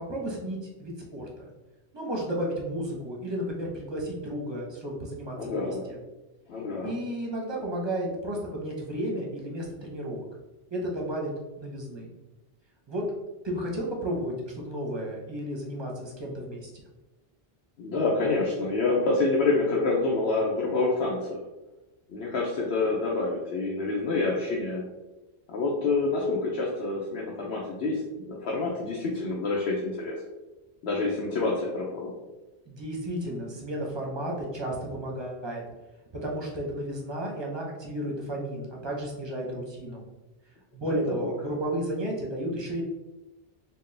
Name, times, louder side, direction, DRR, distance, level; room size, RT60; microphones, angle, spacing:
voice 1, 0.1-1.5 1.9-6.0 6.8-10.2 10.7-11.3 11.6-12.1 12.9-13.1 13.4-16.7 32.7-35.6 36.2-40.0 40.7-42.8, right 1 dB, 30° right, -2 dB, 0.7 m, -33 dB
voice 2, 5.4-5.8 6.5-6.9 17.8-21.4 22.1-24.8 25.5-28.0 28.3-30.2 30.8-32.1 41.1-41.3, left 3 dB, 75° left, -3 dB, 0.9 m, -27 dB
4.4 x 2.2 x 3.2 m, 1.1 s
omnidirectional pair, 1.1 m